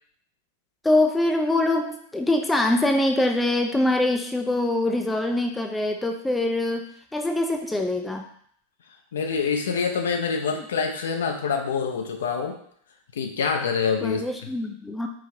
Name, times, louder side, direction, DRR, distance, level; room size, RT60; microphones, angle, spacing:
voice 1, 0.8-8.3 14.0-15.1, left 1 dB, 5° left, 3 dB, 0.4 m, -24 dB
voice 2, 9.1-12.6 13.2-14.2, left 5 dB, 60° left, 4 dB, 0.5 m, -26 dB
4.8 x 2.7 x 2.6 m, 0.63 s
figure-of-eight pair, 90°, 0 cm